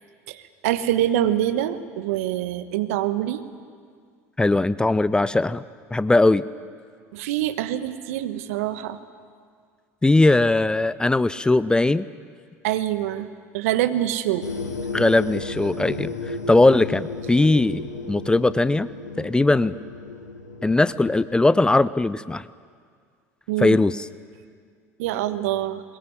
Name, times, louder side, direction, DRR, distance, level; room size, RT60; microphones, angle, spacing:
voice 1, 0.3-3.4 7.1-9.0 12.6-13.3 13.5-14.5 23.5-23.8 25.0-25.8, right 12 dB, 65° right, 11 dB, 1.3 m, -25 dB
voice 2, 4.4-5.6 5.9-6.4 10.0-12.1 14.9-18.9 19.2-19.8 20.6-22.4 23.6-24.1, left 2 dB, 10° left, 17 dB, 0.6 m, -19 dB
sound 1, 14.4-21.5, left 3 dB, 85° left, 1.7 m, -34 dB
22.0 x 21.5 x 9.6 m, 2.1 s
figure-of-eight pair, 70°, 8 cm